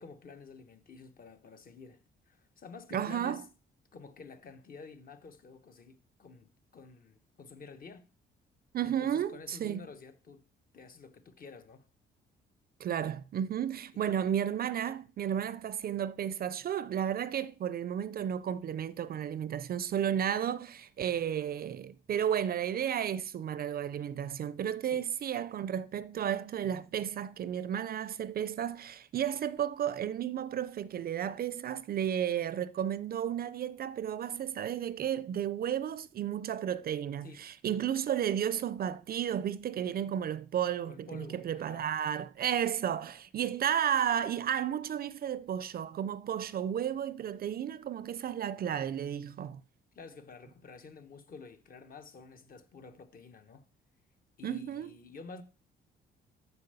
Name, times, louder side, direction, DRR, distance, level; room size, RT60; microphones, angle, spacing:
voice 1, 0.0-3.5 3.9-8.1 8.8-10.5 10.7-11.9 14.0-14.2 24.8-25.1 37.2-37.5 40.9-41.9 49.9-53.6 54.4-55.4, left 4 dB, 45° left, 1.0 m, -50 dB
voice 2, 2.9-3.4 8.7-9.9 12.8-49.6 54.4-54.9, right 9 dB, 50° right, 0.4 m, -33 dB
6.9 x 4.3 x 6.7 m
cardioid pair, 90°, 20 cm